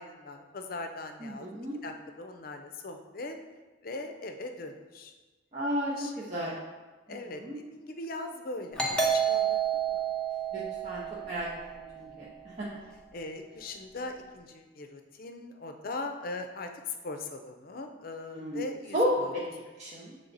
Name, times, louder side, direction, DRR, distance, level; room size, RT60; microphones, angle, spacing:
voice 1, 0.0-3.4 3.8-5.1 6.0-6.6 7.1-9.6 9.9-10.0 12.0-12.4 13.1-19.3, left 2 dB, 50° left, 5 dB, 0.5 m, -40 dB
voice 2, 1.2-1.8 5.5-6.6 7.3-7.6 10.5-11.5 11.7-12.8 18.3-18.7 18.9-19.4 19.8-20.1, equal, 35° right, -6 dB, 0.7 m, -33 dB
Doorbell, 8.8-12.1, right 7 dB, 5° left, 0.7 m, -30 dB
7.1 x 3.4 x 3.9 m, 1.2 s
head